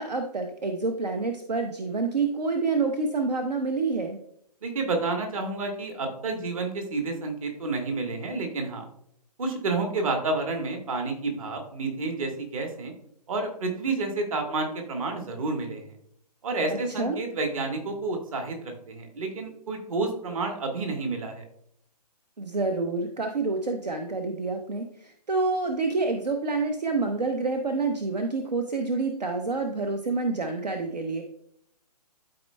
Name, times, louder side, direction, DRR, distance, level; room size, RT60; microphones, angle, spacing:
voice 1, 0.0-4.2 16.7-17.2 22.4-31.2, right 3 dB, 75° right, 5 dB, 0.8 m, -28 dB
voice 2, 4.6-8.8 9.4-12.9 13.3-15.8 16.4-21.4, right 3 dB, 55° right, 3 dB, 1.6 m, -30 dB
12.5 x 4.3 x 2.2 m, 0.71 s
figure-of-eight pair, 125°, 21 cm